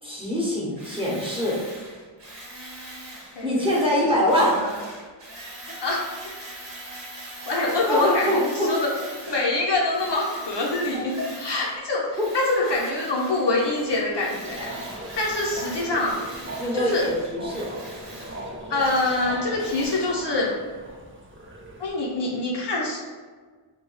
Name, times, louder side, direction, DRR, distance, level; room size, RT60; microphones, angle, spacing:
voice 1, 0.0-1.6 3.4-4.5 7.9-8.7 12.6-12.7 16.6-17.7, equal, 10° right, -6 dB, 0.8 m, -23 dB
Tools, 0.8-9.6 9.9-11.8 12.1-20.2, right 1 dB, 60° right, 0.9 m, -41 dB
voice 2, 5.6-6.0 7.5-8.9 9.3-14.7 15.2-16.2 16.7-17.0 18.7-20.5 21.8-23.1, left 2 dB, 55° left, -3 dB, 0.6 m, -25 dB
sound 1, 14.4-21.9, right 1 dB, 25° right, 0.4 m, -39 dB
2.2 x 2.0 x 3.8 m, 1.5 s
wide cardioid pair, 45°, 49 cm